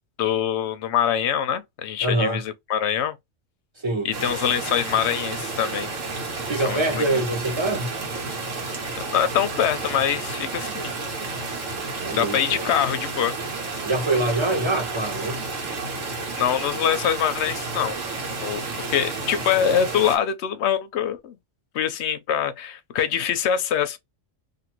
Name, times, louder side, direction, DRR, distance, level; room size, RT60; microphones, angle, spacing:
voice 1, 0.2-3.2 4.0-5.9 6.7-7.2 9.0-10.9 12.1-13.3 16.4-18.0 18.4-21.4 21.7-24.0, left 9 dB, 65° left, 0.8 m, -24 dB
voice 2, 2.0-2.4 3.8-4.1 6.5-7.9 12.0-12.8 13.8-15.4, right 2 dB, 25° right, 0.9 m, -24 dB
sound 1, 4.1-20.2, right 3 dB, 80° right, 1.3 m, -31 dB
2.6 x 2.5 x 2.9 m
omnidirectional pair, 1.3 m